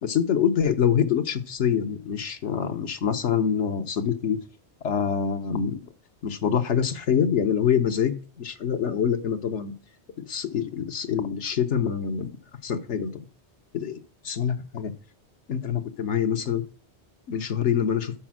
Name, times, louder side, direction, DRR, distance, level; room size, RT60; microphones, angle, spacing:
voice 1, 0.0-4.4 4.8-5.8 6.2-9.7 10.3-12.3 12.6-13.2 13.7-14.0 14.2-14.9 15.5-16.6 17.3-18.1, left 8 dB, 85° left, 7 dB, 1.3 m, -25 dB
12.0 x 4.3 x 6.2 m, 0.40 s
omnidirectional pair, 1.2 m